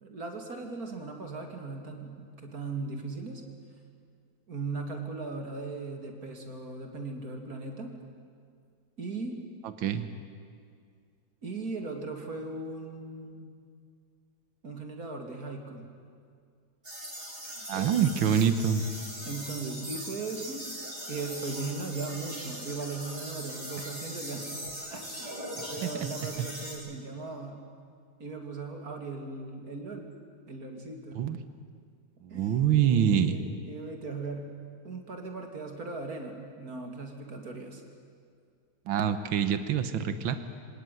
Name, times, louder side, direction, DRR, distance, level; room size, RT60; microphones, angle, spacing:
voice 1, 0.0-3.4 4.5-7.9 9.0-9.4 11.4-13.5 14.6-15.9 17.7-18.0 19.2-20.7 21.1-24.6 24.9-25.3 25.7-27.6 28.2-30.1 30.5-31.2 32.3-34.5 34.8-37.8, right 3 dB, 45° right, 3 dB, 3.0 m, -38 dB
sound 1, 16.8-26.7, equal, 20° right, 5.7 m, -40 dB
voice 2, 17.7-18.9 25.6-26.1 26.4-26.5 31.2-31.4 32.2-33.4 38.9-40.4, right 8 dB, 80° right, 10 dB, 1.9 m, -26 dB
26.5 x 18.0 x 9.4 m, 2.2 s
omnidirectional pair, 2.2 m